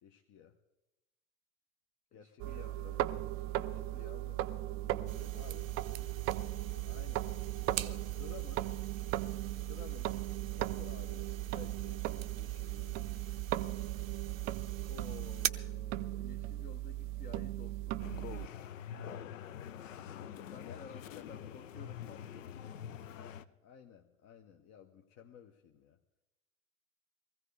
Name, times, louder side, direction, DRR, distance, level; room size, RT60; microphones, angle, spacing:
voice 1, 0.0-0.6 2.1-3.0 3.6-4.0 5.3-5.6 6.8-7.3 7.7-8.7 9.7-10.2 10.5-13.0 18.9-19.4 20.1-21.6 23.2-26.0, left 8 dB, 40° left, 5 dB, 0.9 m, -55 dB
voice 2, 2.1-2.8 3.4-5.9 6.4-7.0 10.0-10.2 14.9-18.3 20.3-22.6, left 7 dB, 20° left, 9 dB, 0.5 m, -55 dB
sound 1, 2.4-18.5, right 15 dB, 35° right, 0.5 m, -38 dB
sound 2, 5.1-15.5, right 12 dB, 90° right, 0.6 m, -42 dB
sound 3, 18.0-23.5, left 9 dB, 75° left, 0.6 m, -45 dB
20.5 x 15.0 x 3.3 m, 0.97 s
hypercardioid pair, 85°, 38 cm